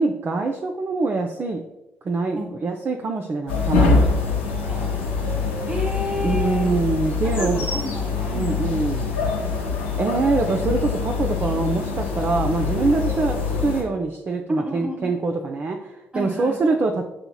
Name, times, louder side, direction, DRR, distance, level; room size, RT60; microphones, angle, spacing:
voice 1, 0.0-1.6 2.0-4.1 6.2-7.6 8.3-9.1 10.0-17.0, right 3 dB, 35° right, 2 dB, 0.4 m, -24 dB
sound 1, 3.5-13.8, left 4 dB, 80° left, 0.7 m, -24 dB
voice 2, 4.6-5.2 5.6-6.8 7.2-8.8 9.2-10.3 12.7-12.9 14.5-15.3 16.1-16.8, equal, 20° right, 2 dB, 1.2 m, -33 dB
7.5 x 2.9 x 2.3 m, 0.99 s
figure-of-eight pair, 40°, 6 cm